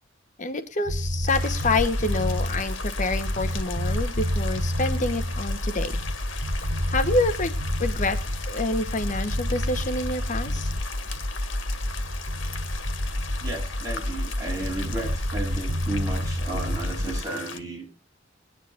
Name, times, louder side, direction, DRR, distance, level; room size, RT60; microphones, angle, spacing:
voice 1, 0.4-6.0 6.3-6.5 6.9-8.2 8.5-10.7, left 2 dB, 40° left, 8 dB, 0.9 m, -27 dB
sound 1, 0.9-17.2, equal, 75° right, 2.0 m, -28 dB
sound 2, 1.3-17.6, left 5 dB, 85° left, 1.8 m, -39 dB
voice 2, 13.4-17.9, right 2 dB, 20° right, -2 dB, 7.5 m, -33 dB
22.0 x 9.9 x 2.4 m, 0.27 s
head